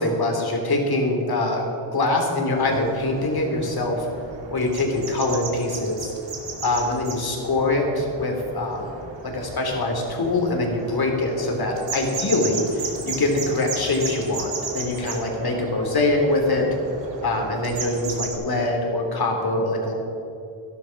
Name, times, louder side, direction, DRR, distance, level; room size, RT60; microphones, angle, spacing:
voice 1, 0.0-1.7 1.9-4.1 4.5-6.1 6.6-9.0 9.2-16.7 17.2-19.9, left 2 dB, 50° left, 1 dB, 3.4 m, -24 dB
sound 1, 2.6-18.3, right 4 dB, 65° right, 2.7 m, -35 dB
12.0 x 11.5 x 6.0 m, 2.7 s
supercardioid pair, 55°, 47 cm